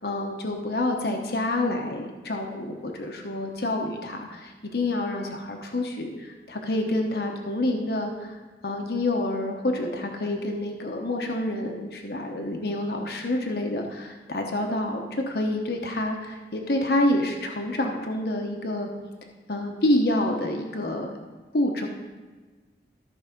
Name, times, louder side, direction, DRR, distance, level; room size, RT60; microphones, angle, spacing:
voice 1, 0.0-18.9 19.5-21.1 21.5-21.9, left 1 dB, 60° left, 3 dB, 1.0 m, -28 dB
13.5 x 4.7 x 5.3 m, 1.3 s
head